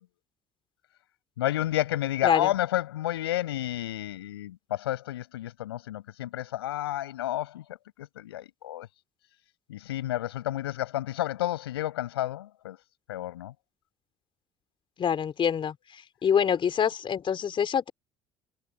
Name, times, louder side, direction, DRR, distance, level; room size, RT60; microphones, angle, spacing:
voice 1, 1.4-8.9 9.7-12.8 13.1-13.5, left 14 dB, 85° left, 7.6 m, -31 dB
voice 2, 15.0-17.9, left 8 dB, 40° left, 4.7 m, -26 dB
hypercardioid pair, 65°, 13 cm